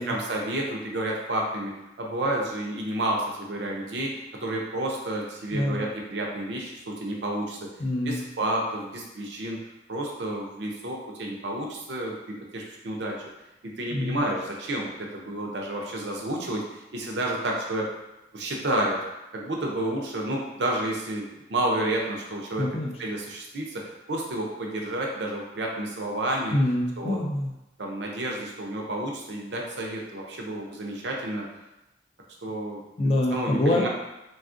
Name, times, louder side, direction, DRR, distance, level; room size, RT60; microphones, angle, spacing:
voice 1, 0.0-7.7 8.0-9.6 9.9-13.1 13.6-17.9 18.3-19.0 19.3-22.7 23.0-26.6 27.0-27.2 27.8-31.5 32.4-32.8 33.3-33.9, right 1 dB, 70° right, -1 dB, 0.6 m, -30 dB
voice 2, 5.5-5.8 7.8-8.2 13.9-14.3 22.6-22.9 26.5-27.5 33.0-33.9, left 1 dB, 35° left, 0 dB, 0.3 m, -25 dB
3.4 x 2.3 x 2.5 m, 0.95 s
head